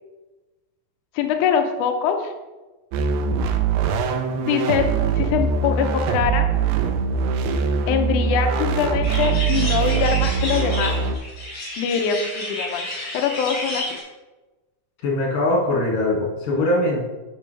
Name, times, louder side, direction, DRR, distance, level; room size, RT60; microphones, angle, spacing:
voice 1, 1.2-2.3 4.5-4.9 5.2-6.5 7.9-11.0 11.8-12.9 13.1-13.8, left 7 dB, 85° left, 4 dB, 1.7 m, -23 dB
sound 1, 2.9-11.2, right 6 dB, 90° right, 2.8 m, -22 dB
sound 2, 9.0-14.0, left 1 dB, 45° left, 3.5 m, -31 dB
voice 2, 15.0-17.0, left 1 dB, 60° left, -3 dB, 3.6 m, -21 dB
10.5 x 6.2 x 3.4 m, 1.2 s
omnidirectional pair, 4.6 m